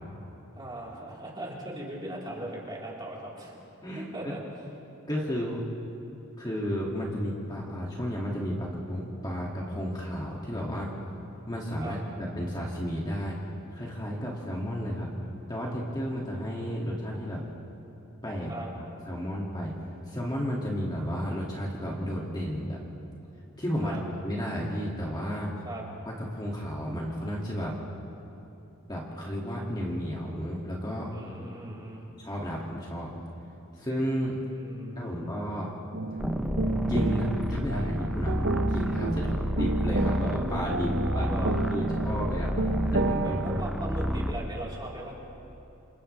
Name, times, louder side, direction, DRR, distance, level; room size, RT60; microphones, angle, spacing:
voice 1, 0.6-3.6 4.0-4.4 11.8-12.0 18.5-18.7 23.8-24.0 25.6-25.8 31.1-32.1 34.5-35.3 41.1-41.5 43.2-45.1, right 1 dB, 20° right, -5 dB, 4.0 m, -39 dB
voice 2, 3.8-4.3 5.1-5.6 6.4-10.9 11.5-13.4 13.7-15.1 15.5-17.4 18.2-19.7 20.1-22.8 23.6-25.5 26.1-27.7 28.9-31.1 32.2-33.1 33.8-34.4 35.0-35.8 36.9-41.3 41.7-43.6, equal, 20° left, -4 dB, 2.3 m, -33 dB
sound 1, 35.9-43.6, right 3 dB, 60° right, 0.9 m, -31 dB
sound 2, 36.2-44.4, equal, ahead, 0.6 m, -30 dB
28.5 x 28.0 x 3.4 m, 2.9 s
head